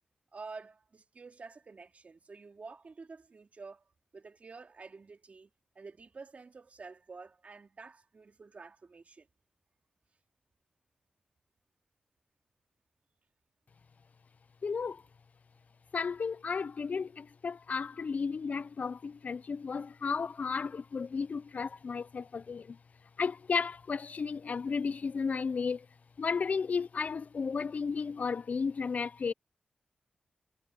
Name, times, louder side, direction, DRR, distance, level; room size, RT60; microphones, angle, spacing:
voice 1, 0.3-3.8 4.1-5.5 5.7-9.3, right 4 dB, 50° right, 3.3 m, -49 dB
voice 2, 14.6-15.0 15.9-22.8 23.2-25.9 26.2-29.3, left 5 dB, 55° left, 0.4 m, -33 dB
cardioid pair, 75°, 3 cm